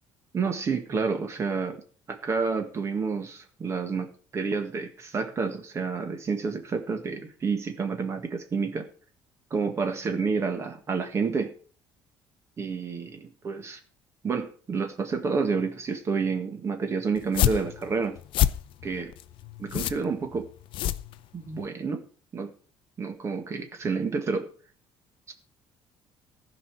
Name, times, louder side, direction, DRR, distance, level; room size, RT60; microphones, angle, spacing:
voice 1, 0.3-1.8 2.1-8.9 9.5-11.5 12.6-13.8 14.2-18.2 18.8-19.1 19.6-20.5 21.3-22.0 22.3-22.5 23.0-24.5 25.3-25.4, right 5 dB, 30° right, 6 dB, 1.7 m, -29 dB
sound 1, 17.2-21.7, left 12 dB, 60° left, 0.6 m, -28 dB
15.0 x 5.3 x 7.4 m, 0.43 s
cardioid pair, 155°, 10 cm